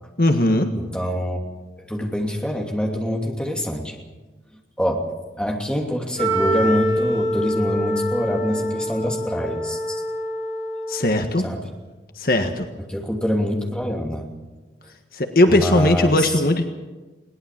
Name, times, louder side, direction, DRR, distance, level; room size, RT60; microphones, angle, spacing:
voice 1, 0.2-0.7 10.9-11.4 12.2-12.7 15.1-16.6, left 1 dB, 55° left, 6 dB, 1.6 m, -18 dB
voice 2, 0.7-1.4 1.9-4.0 4.8-5.1 5.4-10.0 11.4-11.7 12.8-14.3 15.5-16.4, equal, 5° left, 1 dB, 2.8 m, -25 dB
Wind instrument woodwind instrument, 6.2-11.3, equal, 30° right, 4.4 m, -25 dB
21.5 x 18.5 x 7.5 m, 1.2 s
head